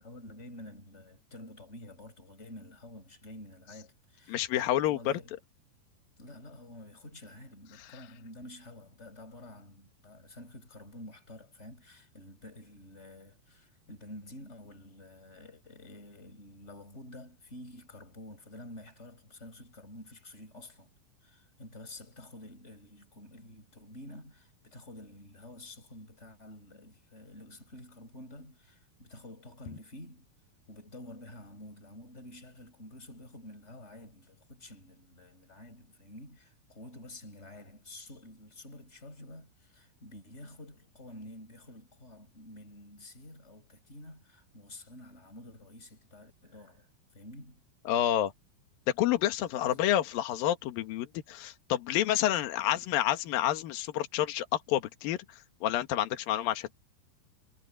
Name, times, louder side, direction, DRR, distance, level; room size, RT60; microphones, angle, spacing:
voice 1, 0.0-5.4 6.2-20.9 21.2-30.3 30.7-47.6 49.6-49.9 52.6-52.9, left 1 dB, 15° left, 7.2 m, -49 dB
voice 2, 4.3-5.1 47.9-48.3 49.0-55.2 55.6-56.7, left 12 dB, 60° left, 3.0 m, -29 dB
omnidirectional pair, 5.1 m